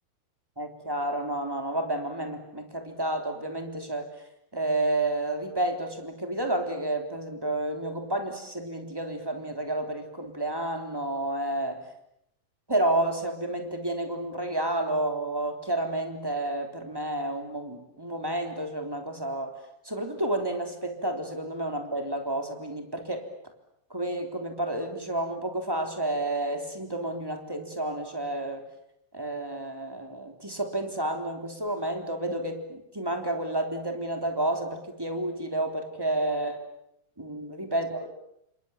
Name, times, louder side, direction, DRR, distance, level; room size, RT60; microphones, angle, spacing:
voice 1, 0.6-4.1 4.5-11.7 12.7-19.5 19.8-23.3 23.9-28.6 29.1-36.6 37.2-38.2, right 1 dB, 5° right, 4 dB, 2.8 m, -30 dB
29.5 x 26.5 x 7.2 m, 0.76 s
omnidirectional pair, 4.8 m